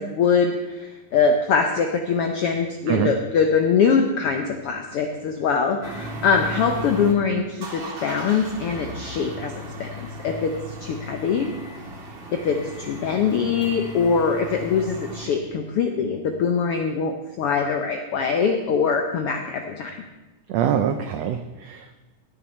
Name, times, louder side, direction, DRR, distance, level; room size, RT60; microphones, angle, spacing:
voice 1, 0.0-9.5 9.8-11.5 12.3-20.0, left 5 dB, 80° left, 4 dB, 1.3 m, -23 dB
sound 1, 5.8-7.1 7.5-15.3, right 1 dB, 40° right, 2.0 m, -36 dB
voice 2, 20.5-22.0, right 9 dB, 85° right, 9 dB, 1.4 m, -24 dB
17.0 x 9.2 x 4.4 m, 1.1 s
omnidirectional pair, 3.7 m